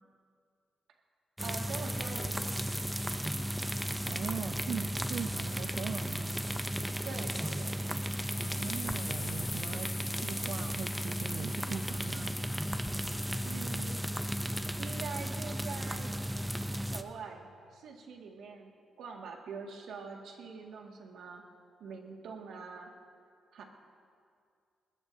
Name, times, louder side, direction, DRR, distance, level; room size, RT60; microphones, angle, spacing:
sound 1, 1.4-17.0, equal, 5° right, 0.5 m, -35 dB
voice 1, 1.4-2.7 7.0-7.8 13.4-14.0 14.8-16.2 16.8-21.4 21.8-22.9 23.5-23.6, right 5 dB, 80° right, 1 dB, 2.0 m, -44 dB
voice 2, 4.1-6.4 8.4-12.4, right 7 dB, 65° right, 8 dB, 0.5 m, -41 dB
sound 2, 8.3-14.4, left 4 dB, 30° left, 1.3 m, -46 dB
21.0 x 20.0 x 2.7 m, 2.3 s
cardioid pair, 150°, 0 cm